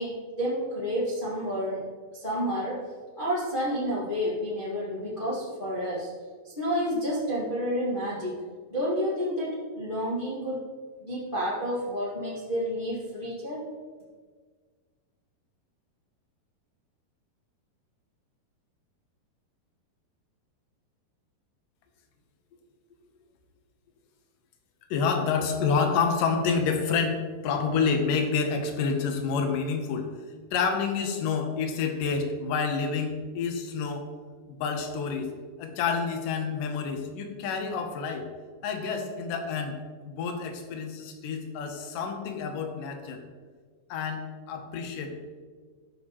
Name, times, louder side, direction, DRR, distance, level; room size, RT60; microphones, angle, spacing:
voice 1, 0.0-1.8 2.1-2.9 3.1-6.1 6.4-8.3 8.7-10.6 11.0-13.6, equal, 50° left, -8 dB, 0.6 m, -30 dB
voice 2, 24.9-30.1 30.5-34.1 34.6-35.3 35.6-38.3 38.6-39.8 40.1-43.2 43.9-45.1, left 5 dB, 70° left, 5 dB, 2.2 m, -28 dB
13.5 x 5.9 x 3.0 m, 1.6 s
omnidirectional pair, 4.5 m